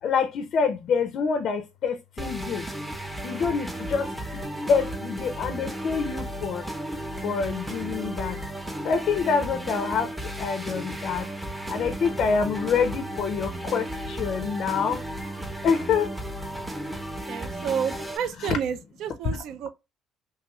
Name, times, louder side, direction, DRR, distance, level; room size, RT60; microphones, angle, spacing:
voice 1, 0.0-2.7 3.2-4.4 4.7-6.6 7.2-8.4 8.8-11.3 11.7-15.0 15.6-16.1 18.4-18.6 19.2-19.4, left 6 dB, 60° left, 0.4 m, -26 dB
sound 1, 2.2-18.2, right 1 dB, 5° right, 0.7 m, -34 dB
voice 2, 17.3-19.7, right 8 dB, 70° right, 0.3 m, -30 dB
2.9 x 2.3 x 2.9 m
cardioid pair, 105°, 0 cm